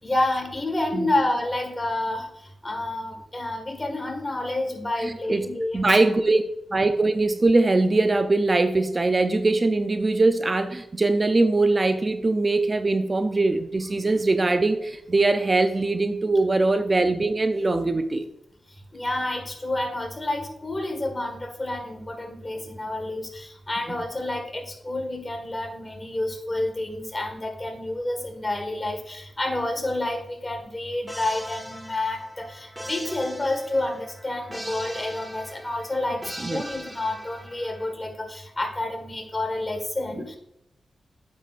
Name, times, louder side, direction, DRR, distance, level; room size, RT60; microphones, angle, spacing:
voice 1, 0.0-2.3 2.6-5.9 18.9-36.2 36.5-40.4, left 2 dB, 25° left, 3 dB, 1.6 m, -29 dB
voice 2, 5.0-5.5 5.7-6.4 6.7-18.3 36.4-36.6, right 2 dB, 35° right, 8 dB, 0.5 m, -22 dB
sound 1, 31.1-37.9, equal, 10° right, 0.9 m, -40 dB
9.1 x 5.8 x 2.5 m, 0.82 s
cardioid pair, 60°, 0 cm